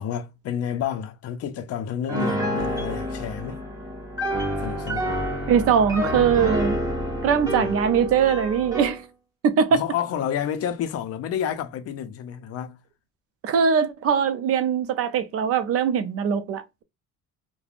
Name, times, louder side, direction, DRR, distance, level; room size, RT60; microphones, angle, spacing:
voice 1, 0.0-3.6 4.6-5.1 7.4-7.7 9.7-12.8, left 9 dB, 55° left, 0.5 m, -30 dB
Piano, 2.1-9.0, equal, 10° right, 1.0 m, -28 dB
voice 2, 5.5-6.8 7.2-9.0 9.4-9.8 13.4-16.8, right 7 dB, 50° right, 0.5 m, -21 dB
3.3 x 2.1 x 2.4 m
cardioid pair, 155°, 29 cm